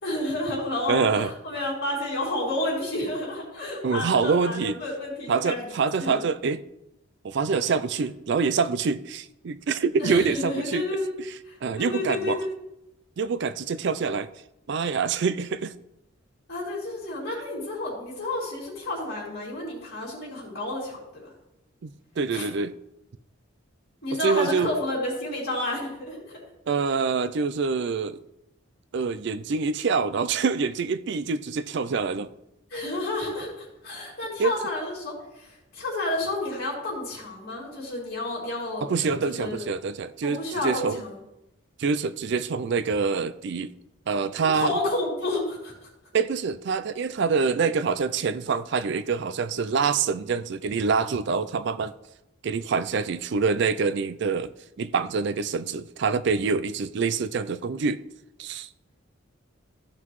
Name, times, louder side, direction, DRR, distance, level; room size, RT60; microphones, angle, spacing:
voice 1, 0.0-5.6 6.0-6.2 10.0-11.1 11.4-12.5 16.5-21.3 22.3-22.5 24.0-26.4 32.7-39.7 40.2-41.2 44.4-45.7, left 1 dB, 50° left, 3.0 m, -30 dB
voice 2, 0.9-1.3 3.8-4.8 5.3-6.6 7.2-11.3 11.6-12.4 13.2-14.3 14.7-15.7 21.8-21.9 22.2-22.7 24.1-24.7 26.7-28.2 28.9-32.3 34.4-34.5 38.8-41.0 41.8-43.7 44.1-44.8 46.1-51.9 52.4-58.0 58.4-58.7, right 5 dB, 55° right, 0.4 m, -26 dB
14.0 x 5.6 x 3.1 m
head